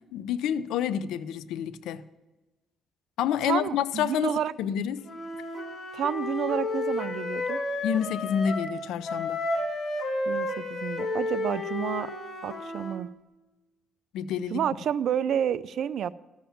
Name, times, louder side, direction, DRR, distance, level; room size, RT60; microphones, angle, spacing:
voice 1, 0.1-2.0 3.2-5.0 7.8-9.4 14.1-14.6, left 9 dB, 90° left, 0.5 m, -28 dB
voice 2, 3.4-4.5 5.9-7.6 10.3-12.1 12.4-13.1 14.5-16.1, right 9 dB, 70° right, 0.4 m, -30 dB
Wind instrument woodwind instrument, 5.0-8.8 9.0-13.0, left 2 dB, 45° left, 2.9 m, -31 dB
12.5 x 7.3 x 7.2 m
cardioid pair, 90°, 0 cm